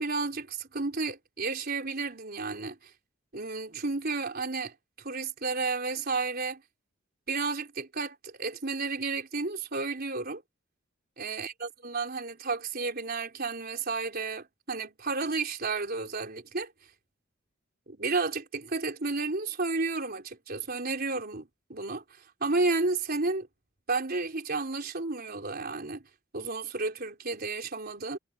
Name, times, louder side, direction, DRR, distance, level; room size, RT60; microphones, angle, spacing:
voice 1, 0.0-2.9 3.3-6.6 7.3-10.4 11.2-16.7 17.9-22.0 22.4-23.5 23.9-26.0 26.3-28.2, right 3 dB, 50° right, 4.1 m, -32 dB
head